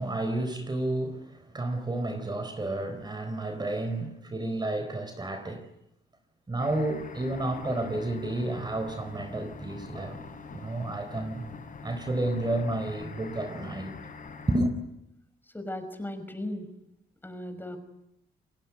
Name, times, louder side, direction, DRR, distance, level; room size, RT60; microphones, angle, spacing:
voice 1, 0.0-5.6 6.5-10.2 10.4-11.4 11.8-13.9 14.5-14.7, right 2 dB, 25° right, 4.1 m, -31 dB
sound 1, 6.6-14.6, left 4 dB, 45° left, 7.7 m, -44 dB
voice 2, 15.5-16.7 17.2-17.8, left 1 dB, 10° left, 5.6 m, -37 dB
29.5 x 21.0 x 9.4 m
cardioid pair, 100°, 19 cm